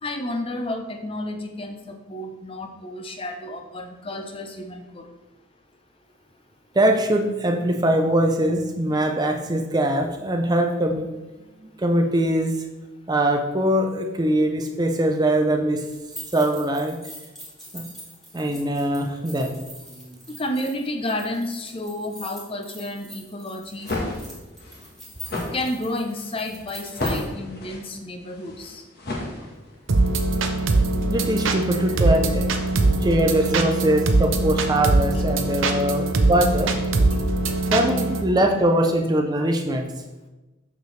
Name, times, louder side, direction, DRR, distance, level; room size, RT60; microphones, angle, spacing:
voice 1, 0.0-5.1 20.3-23.9 25.5-28.8 31.6-32.0 32.6-32.7 35.1-35.2 36.0-36.2 37.1-37.6, left 1 dB, 25° left, 5 dB, 0.6 m, -31 dB
voice 2, 6.7-11.1 11.6-12.6 13.1-15.8 16.3-17.0 17.7-17.8 18.3-19.5 20.1-20.2 31.1-32.5 33.0-36.7 37.7-39.9, right 1 dB, 20° right, 4 dB, 0.5 m, -22 dB
sound 1, 15.9-27.2, equal, ahead, 1.6 m, -43 dB
sound 2, 23.7-29.9, left 1 dB, 50° left, 1.3 m, -32 dB
sound 3, 29.9-38.2, right 2 dB, 70° right, 0.7 m, -22 dB
6.6 x 6.5 x 3.2 m, 1.1 s
head